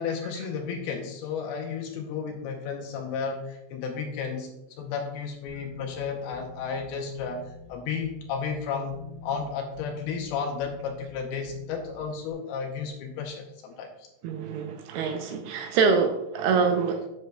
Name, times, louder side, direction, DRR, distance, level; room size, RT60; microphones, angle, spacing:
voice 1, 0.0-4.5 4.8-14.1, left 6 dB, 80° left, 3 dB, 2.5 m, -33 dB
sound 1, 5.5-12.3, left 3 dB, 40° left, 0.9 m, -48 dB
voice 2, 14.2-17.0, right 5 dB, 80° right, 5 dB, 2.5 m, -25 dB
10.5 x 6.6 x 2.2 m, 0.87 s
omnidirectional pair, 4.9 m